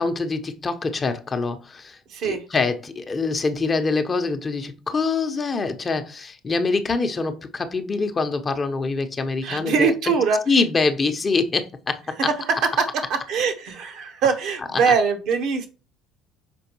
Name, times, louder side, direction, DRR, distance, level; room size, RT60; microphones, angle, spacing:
voice 1, 0.0-10.2 10.5-12.1 14.9-15.0, left 4 dB, 30° left, 0.9 m, -25 dB
voice 2, 2.1-2.4 9.4-10.4 12.3-15.7, right 5 dB, 55° right, 1.2 m, -22 dB
6.1 x 5.0 x 3.0 m
hypercardioid pair, 60°, 0 cm